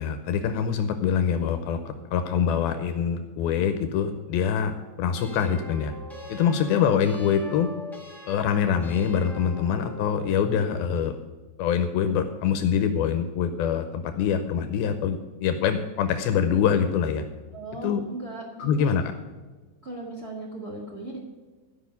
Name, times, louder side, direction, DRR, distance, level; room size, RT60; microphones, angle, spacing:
voice 1, 0.0-4.7 5.0-5.9 6.3-7.7 8.3-11.1 11.6-17.2 17.8-18.0 18.6-19.1, left 7 dB, 80° left, 8 dB, 2.2 m, -24 dB
sound 1, 5.2-10.9, equal, ahead, 0.6 m, -41 dB
voice 2, 17.5-19.0 19.8-21.2, right 2 dB, 50° right, -1 dB, 0.7 m, -37 dB
14.0 x 5.6 x 8.3 m, 1.3 s
omnidirectional pair, 5.1 m